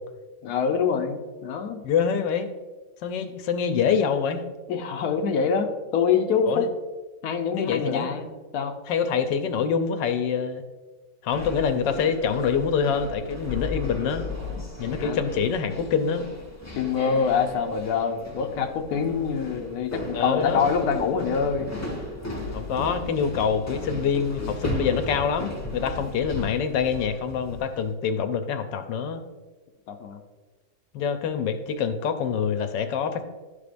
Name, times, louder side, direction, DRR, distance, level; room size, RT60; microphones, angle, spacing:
voice 1, 0.4-1.8 4.7-6.7 7.2-8.7 15.0-15.2 16.8-21.7 29.9-30.2, left 6 dB, 65° left, 4 dB, 1.2 m, -25 dB
voice 2, 1.8-2.5 3.0-4.4 6.5-6.7 7.5-8.1 8.9-10.6 11.2-14.3 14.8-16.2 20.1-20.6 22.5-29.2 30.9-33.3, left 6 dB, 90° left, 8 dB, 1.3 m, -25 dB
sound 1, 11.3-27.8, left 2 dB, 15° left, 0.8 m, -35 dB
12.0 x 5.0 x 2.5 m, 1.3 s
omnidirectional pair, 1.9 m